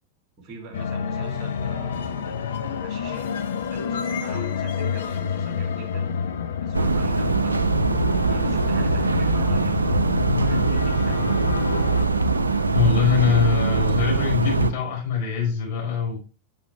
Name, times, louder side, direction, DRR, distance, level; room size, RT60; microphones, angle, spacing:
voice 1, 0.4-2.3 2.8-3.4 3.7-6.1 6.6-7.6 8.2-11.3, right 3 dB, 30° right, 2.9 m, -43 dB
sound 1, 0.7-12.1, left 6 dB, 65° left, 0.9 m, -28 dB
sound 2, 6.7-14.7, right 4 dB, 80° right, 0.5 m, -22 dB
voice 2, 12.7-16.2, left 7 dB, 45° left, 4.7 m, -22 dB
8.0 x 7.0 x 3.3 m
figure-of-eight pair, 90°, 0 cm